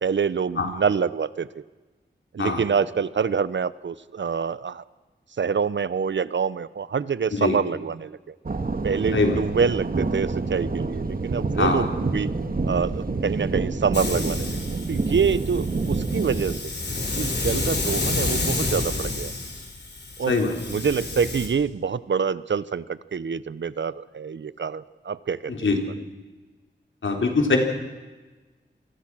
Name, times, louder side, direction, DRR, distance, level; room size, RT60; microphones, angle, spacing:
voice 1, 0.0-1.6 2.3-4.8 5.4-8.3 8.8-12.3 12.7-16.6 17.1-19.3 20.2-20.4 20.7-25.5, right 6 dB, 70° right, 17 dB, 0.8 m, -26 dB
sound 1, 8.5-16.6, right 3 dB, 50° right, 1.7 m, -27 dB
Hiss, 13.9-21.5, left 2 dB, 65° left, 4.8 m, -29 dB
voice 2, 20.3-20.6 25.5-25.8 27.0-27.6, left 3 dB, 80° left, 3 dB, 3.7 m, -22 dB
26.5 x 20.5 x 6.2 m, 1.3 s
wide cardioid pair, 65°, 19 cm